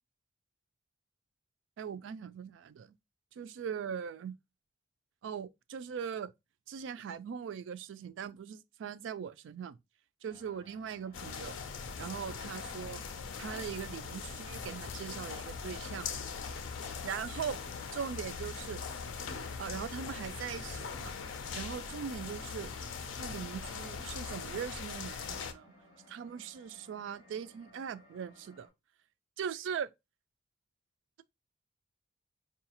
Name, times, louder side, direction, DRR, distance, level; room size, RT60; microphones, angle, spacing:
voice 1, 1.8-2.9 3.4-4.4 5.2-6.3 6.7-9.8 10.2-11.6 12.0-13.0 13.4-16.1 17.0-17.6 17.9-18.8 19.6-21.2 21.5-22.7 23.2-25.7 26.1-28.7 29.4-29.9, right 7 dB, 70° right, 0.3 m, -40 dB
sound 1, 10.3-28.7, equal, 50° left, 2.6 m, -59 dB
sound 2, 11.1-25.5, left 5 dB, 90° left, 0.5 m, -41 dB
4.6 x 2.3 x 2.8 m
head